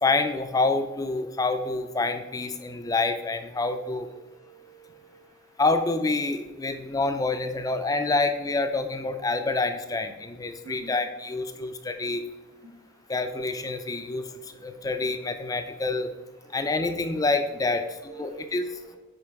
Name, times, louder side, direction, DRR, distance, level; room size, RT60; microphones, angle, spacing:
voice 1, 0.0-4.1 5.6-12.2 13.1-16.1 16.5-18.6, left 3 dB, 15° left, 7 dB, 0.3 m, -27 dB
voice 2, 4.3-5.2 10.6-10.9 16.5-16.7 17.7-17.8 18.1-19.0, right 4 dB, 85° right, 2 dB, 1.4 m, -47 dB
8.0 x 5.3 x 3.5 m, 1.2 s
head